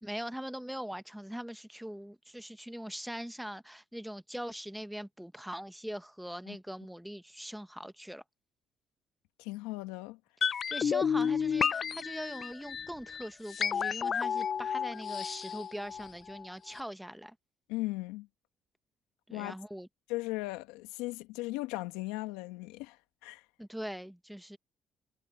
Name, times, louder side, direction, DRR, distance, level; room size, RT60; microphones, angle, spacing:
voice 1, 0.0-8.2 10.5-17.3 19.3-19.9 23.6-24.6, equal, 5° right, 1.2 m, -41 dB
voice 2, 9.4-10.2 17.7-18.3 19.3-19.5 20.1-23.0 23.2-23.4, left 20 dB, 85° left, 1.9 m, -37 dB
sound 1, 10.4-16.4 16.7-16.8, left 7 dB, 55° left, 0.4 m, -31 dB
hypercardioid pair, 55°, 0 cm